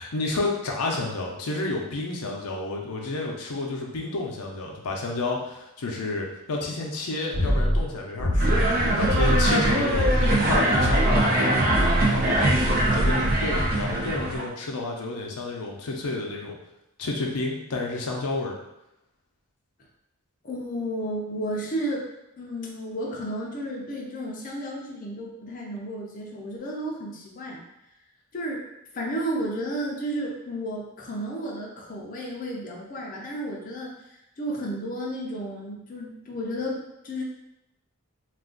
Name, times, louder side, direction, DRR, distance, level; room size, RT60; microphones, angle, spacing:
voice 1, 0.0-12.5 12.9-16.6 17.0-18.5, left 2 dB, 90° left, -1 dB, 0.6 m, -30 dB
sound 1, 7.3-7.8 8.2-8.7 9.0-9.5 9.9-10.4 10.8-11.2 11.6-12.0, equal, 75° right, 1.3 m, -23 dB
sound 2, 8.4-14.5, right 1 dB, 40° right, 0.5 m, -23 dB
voice 2, 20.4-22.1 22.4-27.6 28.3-28.6 28.9-37.2, equal, 35° left, -3 dB, 0.5 m, -32 dB
2.5 x 2.3 x 3.7 m, 0.87 s
head